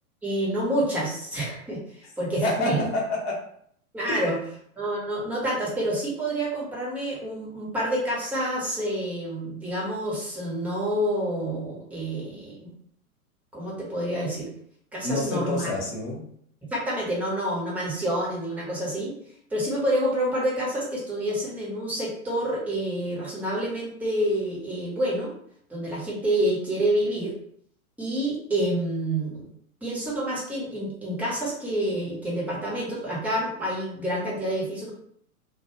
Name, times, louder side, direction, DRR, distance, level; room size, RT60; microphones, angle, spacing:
voice 1, 0.2-1.8 2.2-2.9 3.9-4.4 4.8-12.7 13.5-14.5 14.9-15.7 16.7-19.1 19.5-25.3 25.7-27.3 28.0-29.5 29.8-34.9, right 1 dB, 5° right, -6 dB, 0.6 m, -28 dB
voice 2, 2.4-3.4 4.1-4.2 15.0-16.3, left 2 dB, 40° left, -1 dB, 0.9 m, -28 dB
2.1 x 2.1 x 3.0 m, 0.66 s
figure-of-eight pair, 100°, 44 cm